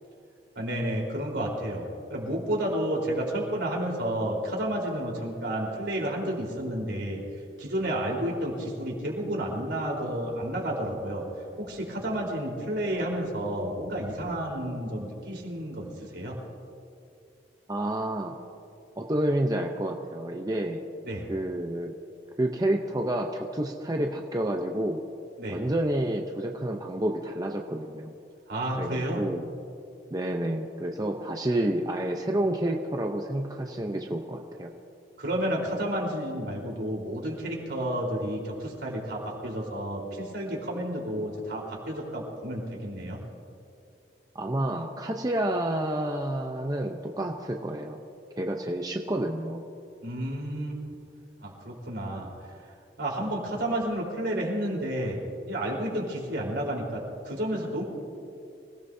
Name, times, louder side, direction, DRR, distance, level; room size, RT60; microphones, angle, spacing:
voice 1, 0.6-7.2 7.6-11.3 11.6-16.4 21.1-21.3 25.4-25.6 28.5-29.2 35.2-43.2 50.0-50.8 51.4-52.3 52.6-55.2 55.5-57.8, right 1 dB, 75° right, -2 dB, 4.0 m, -31 dB
voice 2, 17.7-18.3 19.0-20.8 21.3-21.9 22.4-25.0 25.5-28.2 28.8-29.5 30.1-34.7 44.3-48.0 48.4-49.6, right 1 dB, 20° right, 2 dB, 0.7 m, -29 dB
26.0 x 17.5 x 2.7 m, 2.5 s
head